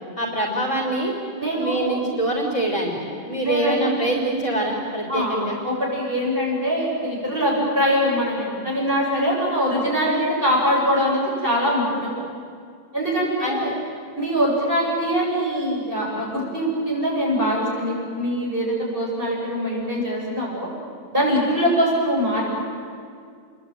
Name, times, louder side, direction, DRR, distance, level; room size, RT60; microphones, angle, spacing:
voice 1, 0.2-1.1 1.6-2.9 3.2-5.6 13.4-13.6, right 1 dB, 40° left, 0 dB, 3.8 m, -24 dB
voice 2, 1.4-1.9 3.4-3.9 5.1-5.4 5.6-12.1 12.9-13.7 14.1-20.7 21.1-22.4, equal, 30° right, -4 dB, 8.4 m, -23 dB
27.5 x 22.0 x 9.4 m, 2.3 s
omnidirectional pair, 2.0 m